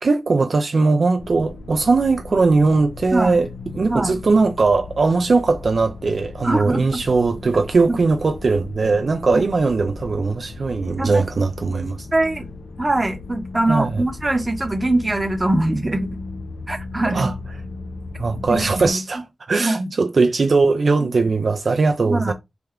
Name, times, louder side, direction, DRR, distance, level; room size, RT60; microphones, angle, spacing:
voice 1, 0.0-12.1 13.7-14.0 17.1-17.3 18.2-19.2 19.5-22.3, right 3 dB, 60° right, 0.3 m, -19 dB
sound 1, 1.2-18.9, left 3 dB, 80° left, 0.5 m, -36 dB
voice 2, 6.4-7.0 7.9-8.0 9.3-9.4 11.0-11.2 12.1-12.5 12.8-16.1 16.7-17.3 18.4-19.0 19.6-19.9 22.0-22.3, right 2 dB, 25° right, 0.7 m, -22 dB
3.4 x 2.2 x 3.5 m
cardioid pair, 65°, 0 cm